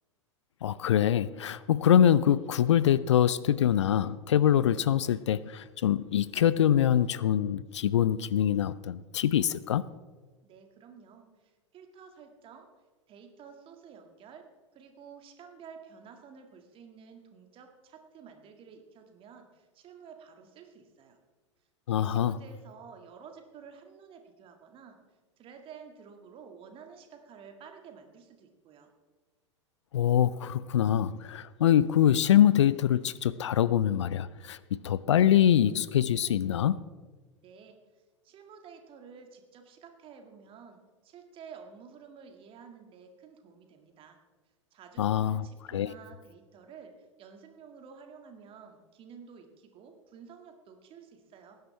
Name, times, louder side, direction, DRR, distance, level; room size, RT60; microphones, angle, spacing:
voice 1, 0.6-9.8 21.9-22.4 29.9-36.8 45.0-45.5 45.7-45.9, left 10 dB, 70° left, 0.4 m, -24 dB
voice 2, 10.4-12.7 13.1-14.5 14.7-21.2 21.9-25.0 25.4-28.9 37.4-44.2 44.7-51.6, right 6 dB, 35° right, 1.9 m, -51 dB
18.5 x 10.5 x 3.3 m
figure-of-eight pair, 85°, 16 cm